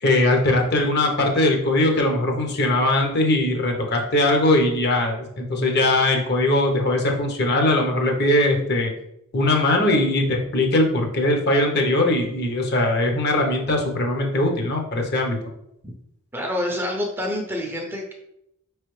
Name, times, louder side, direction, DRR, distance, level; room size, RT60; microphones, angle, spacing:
voice 1, 0.0-8.9 9.3-15.4, left 1 dB, 45° left, 2 dB, 0.8 m, -20 dB
voice 2, 16.3-18.1, left 1 dB, 10° right, 1 dB, 0.5 m, -27 dB
5.2 x 3.2 x 3.1 m, 0.79 s
head